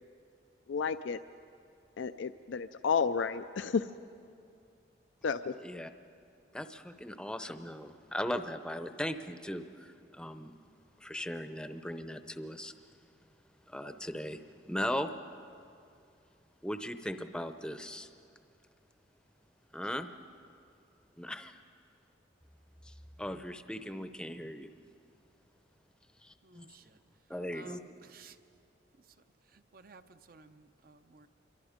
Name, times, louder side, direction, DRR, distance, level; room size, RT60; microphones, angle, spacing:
voice 1, 0.7-1.2 2.0-3.9 5.2-5.5, left 5 dB, 80° left, 11 dB, 0.5 m, -31 dB
voice 2, 6.5-10.5 11.0-12.7 13.7-14.4 14.7-15.1 16.6-18.1 19.7-20.1 21.2-21.5 22.8-24.7 26.2-26.7 27.3-27.8, equal, 5° left, 9 dB, 0.7 m, -38 dB
voice 3, 26.4-27.0 27.5-28.4 29.0-29.2 29.4-31.3, right 3 dB, 50° right, 11 dB, 0.7 m, -56 dB
27.5 x 23.0 x 5.1 m, 2.5 s
head